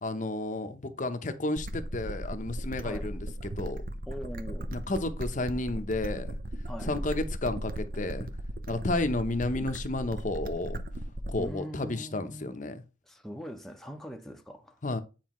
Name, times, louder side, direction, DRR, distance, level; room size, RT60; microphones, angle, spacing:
voice 1, 0.0-3.8 4.7-6.4 6.8-8.3 8.7-10.8 11.3-12.8 14.8-15.0, left 2 dB, 40° left, 0.8 m, -32 dB
sound 1, 1.6-11.6, right 1 dB, 50° right, 0.7 m, -37 dB
voice 2, 4.1-4.7 6.7-7.0 11.4-12.5 13.1-14.8, equal, ahead, 0.8 m, -41 dB
9.2 x 4.8 x 3.1 m
head